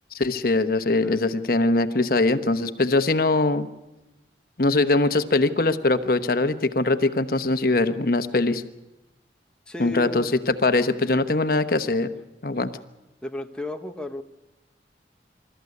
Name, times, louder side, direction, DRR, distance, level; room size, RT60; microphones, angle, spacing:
voice 1, 0.1-3.7 4.6-8.6 9.8-12.1 12.4-12.7, left 2 dB, 55° left, 9 dB, 1.0 m, -22 dB
voice 2, 9.7-10.4 13.2-14.2, left 2 dB, 5° left, 4 dB, 0.9 m, -34 dB
27.5 x 13.5 x 9.6 m, 1.0 s
head